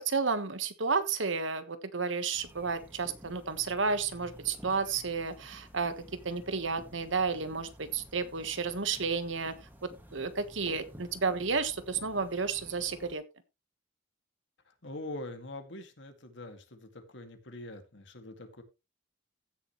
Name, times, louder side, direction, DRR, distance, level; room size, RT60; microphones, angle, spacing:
voice 1, 0.0-5.9 6.2-9.5 9.8-13.2, right 4 dB, 70° right, 11 dB, 1.4 m, -32 dB
sound 1, 2.3-13.2, equal, 10° right, 2.1 m, -53 dB
voice 2, 14.7-18.6, left 2 dB, 65° left, 7 dB, 2.2 m, -44 dB
15.5 x 7.0 x 3.2 m, 0.26 s
head